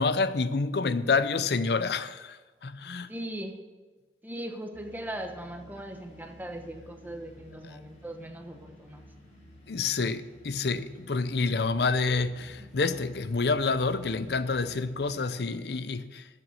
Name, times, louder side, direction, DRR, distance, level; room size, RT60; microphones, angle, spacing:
voice 1, 0.0-3.1 7.7-7.8 9.7-16.3, left 4 dB, 65° left, 0.6 m, -28 dB
voice 2, 3.1-3.6 4.2-9.1, right 1 dB, 10° right, 1.1 m, -39 dB
sound 1, 4.7-15.1, equal, 40° left, 3.0 m, -52 dB
13.5 x 7.8 x 6.5 m
head